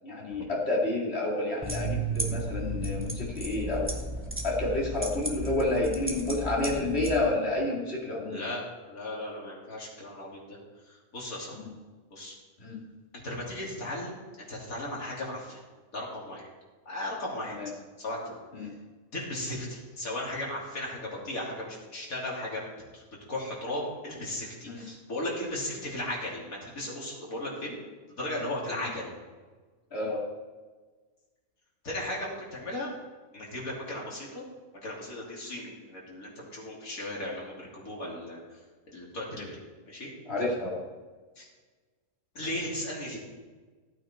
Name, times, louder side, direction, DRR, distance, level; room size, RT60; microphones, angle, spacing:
voice 1, 0.0-3.9 4.4-8.4 11.6-11.7 12.6-12.8 17.6-17.7 18.5-18.7 24.7-24.9 29.9-30.2 40.3-40.8, left 2 dB, 45° left, -4 dB, 2.9 m, -29 dB
sound 1, 1.6-7.1, right 2 dB, 10° right, 1.2 m, -34 dB
voice 2, 8.3-8.6 8.9-10.6 10.9-11.6 12.1-12.3 13.2-14.2 14.5-15.6 15.9-16.5 16.9-17.6 18.0-18.4 19.1-22.6 22.9-23.0 23.3-27.8 28.2-29.1 31.8-32.9 33.3-34.4 34.8-38.4 38.9-39.6 39.9-40.1 41.4-41.5 42.4-43.2, left 1 dB, 70° left, -4 dB, 3.5 m, -36 dB
14.5 x 8.9 x 4.4 m, 1.3 s
omnidirectional pair, 1.5 m